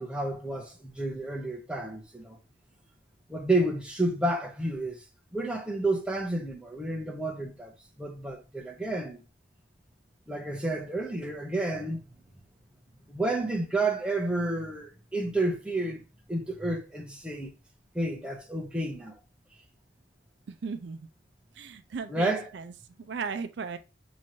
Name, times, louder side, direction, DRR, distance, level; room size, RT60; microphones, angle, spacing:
voice 1, 0.0-2.4 3.3-5.0 5.3-9.2 10.3-12.0 13.1-16.0 16.3-17.5 17.9-19.2 22.1-22.5, right 2 dB, 5° right, 0.7 m, -30 dB
voice 2, 20.5-21.1 21.6-22.6 23.0-23.8, right 5 dB, 65° right, 0.4 m, -36 dB
6.1 x 3.0 x 2.7 m
head